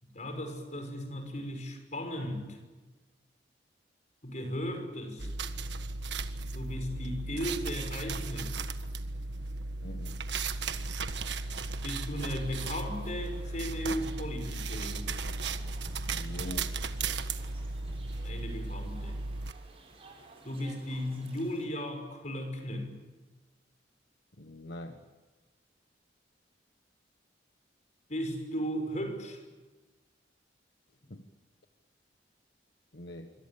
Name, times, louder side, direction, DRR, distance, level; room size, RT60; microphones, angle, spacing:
voice 1, 0.0-2.6 4.2-5.3 6.5-8.5 11.8-15.1 18.2-19.2 20.4-22.9 28.1-29.4 31.0-31.1, equal, 40° left, 5 dB, 5.9 m, -36 dB
sound 1, 5.2-19.5, right 3 dB, 75° right, 1.5 m, -36 dB
voice 2, 9.8-10.2 16.1-16.8 24.4-25.0 31.1-31.2 32.9-33.3, left 1 dB, 65° left, 6 dB, 1.4 m, -43 dB
sound 2, 11.3-21.7, right 3 dB, 35° right, 7.5 m, -56 dB
sound 3, 13.2-18.6, equal, 15° left, 2.8 m, -56 dB
26.5 x 25.5 x 8.7 m, 1.2 s
head